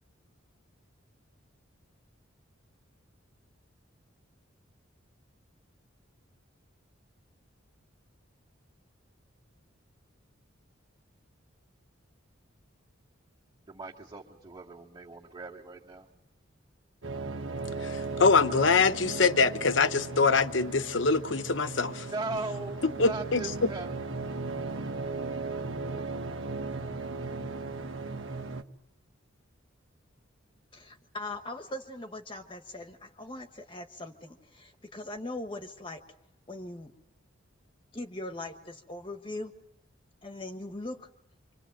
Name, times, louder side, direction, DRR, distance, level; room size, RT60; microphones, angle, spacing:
voice 1, 13.7-16.1 22.0-23.9, right 3 dB, 20° right, 2.3 m, -38 dB
sound 1, 17.0-28.6, right 3 dB, 75° right, 1.4 m, -37 dB
voice 2, 17.8-22.1 23.0-23.4, left 4 dB, 65° left, 1.0 m, -24 dB
voice 3, 30.7-36.0 36.5-36.9 37.9-39.5 40.2-41.1, left 2 dB, 25° left, 1.2 m, -40 dB
27.0 x 25.5 x 7.8 m
head